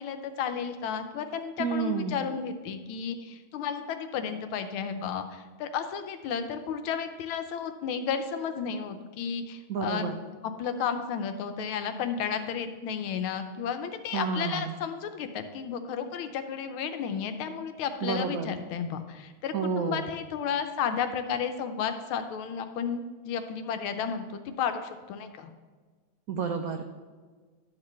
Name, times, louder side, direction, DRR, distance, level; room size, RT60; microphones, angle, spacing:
voice 1, 0.0-10.1 10.4-25.5, left 7 dB, 90° left, 8 dB, 1.6 m, -33 dB
voice 2, 1.6-2.2 9.7-10.1 14.1-14.7 18.0-18.5 19.5-20.1 26.3-26.9, right 5 dB, 85° right, 5 dB, 0.7 m, -30 dB
12.0 x 7.4 x 3.2 m, 1.4 s
omnidirectional pair, 2.3 m